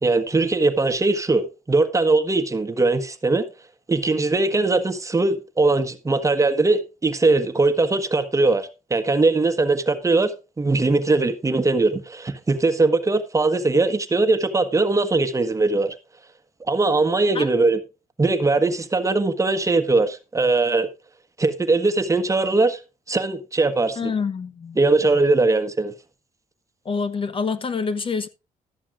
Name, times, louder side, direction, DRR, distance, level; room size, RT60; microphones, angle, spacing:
voice 1, 0.0-3.5 3.9-15.9 16.7-17.8 18.2-20.9 21.4-22.8 23.1-24.1 24.8-25.9, right 3 dB, 20° right, 1.4 m, -20 dB
voice 2, 24.0-24.8 26.8-28.3, left 5 dB, 40° left, 1.0 m, -26 dB
13.5 x 11.0 x 2.5 m
cardioid pair, 85°, 14 cm